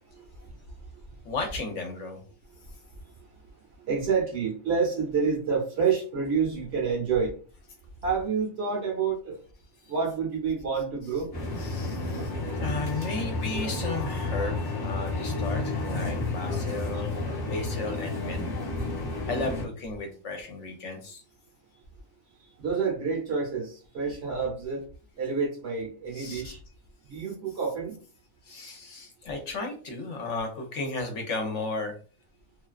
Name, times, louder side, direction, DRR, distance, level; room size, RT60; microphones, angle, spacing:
voice 1, 0.1-0.5 0.9-1.0 2.5-2.6 2.9-3.0 3.8-7.4 8.0-9.4 9.9-11.3 22.6-24.8 25.2-26.6 27.0-28.0, right 5 dB, 60° right, 0.8 m, -28 dB
voice 2, 1.2-2.2 9.8-9.9 11.6-12.3 12.6-17.1 17.4-18.4 19.3-21.2 26.1-26.4 28.4-31.9, left 3 dB, 65° left, 0.9 m, -34 dB
sound 1, 11.3-19.7, left 2 dB, 30° left, 0.4 m, -31 dB
2.4 x 2.2 x 2.3 m
omnidirectional pair, 1.4 m